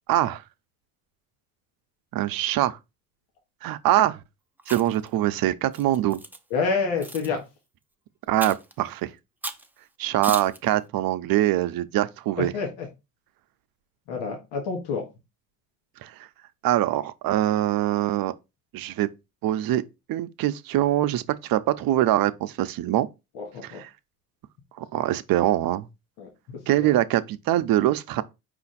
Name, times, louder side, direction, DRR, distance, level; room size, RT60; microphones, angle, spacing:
voice 1, 0.1-0.4 2.1-2.8 3.6-4.2 4.7-6.2 8.3-9.1 10.0-12.5 16.0-16.1 16.6-18.3 18.7-19.1 19.4-19.8 20.1-23.1 23.6-23.9 24.8-25.9 26.7-28.2, right 13 dB, 60° right, 0.6 m, -23 dB
Chewing mastication, 4.6-5.1 5.7-6.4 7.0-7.3 8.4-8.7 9.4-9.7 10.2-10.6, right 2 dB, 5° right, 0.5 m, -35 dB
voice 2, 6.5-7.4 12.4-12.9 14.1-15.1 23.3-23.8 26.2-26.3 26.8-26.9, left 4 dB, 90° left, 1.2 m, -28 dB
5.0 x 2.5 x 4.0 m
cardioid pair, 80°, 39 cm